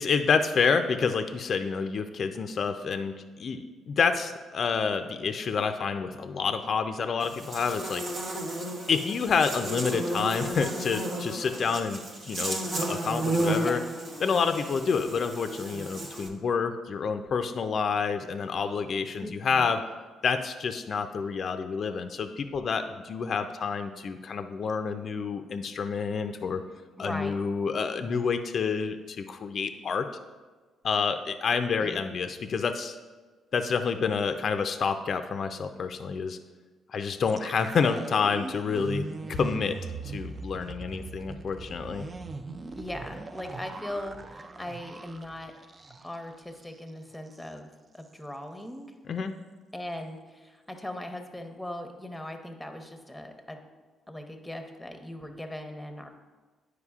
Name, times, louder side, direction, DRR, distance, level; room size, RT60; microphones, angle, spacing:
voice 1, 0.0-3.1 3.4-8.0 8.9-13.8 14.2-19.8 20.2-26.6 27.0-30.1 30.8-33.0 33.5-36.4 36.9-39.0 39.4-39.8 40.0-42.0 49.1-49.3, left 5 dB, 55° left, 8 dB, 0.4 m, -28 dB
Buzz, 7.2-16.3, right 1 dB, 75° right, 1.0 m, -33 dB
voice 2, 13.6-13.9 19.2-19.7 27.0-27.4 31.8-32.0 42.8-45.5 46.0-48.9 49.7-53.6 54.1-56.1, left 1 dB, 5° left, 5 dB, 0.8 m, -39 dB
sound 1, 37.3-46.3 46.6-46.8 47.1-47.5, right 3 dB, 35° right, 0.3 m, -40 dB
9.7 x 4.8 x 2.4 m, 1.3 s
cardioid pair, 90°, 0 cm